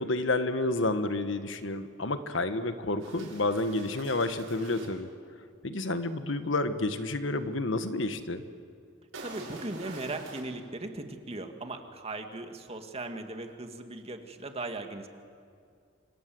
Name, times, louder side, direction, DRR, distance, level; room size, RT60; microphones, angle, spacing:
voice 1, 0.0-5.1 5.6-8.4, left 2 dB, 70° left, 9 dB, 1.5 m, -30 dB
sound 1, 3.0-4.9 9.1-10.4, right 2 dB, 85° right, 7.3 m, -45 dB
voice 2, 9.2-15.0, right 2 dB, 30° right, 5 dB, 2.1 m, -38 dB
28.0 x 26.0 x 7.9 m, 2.2 s
head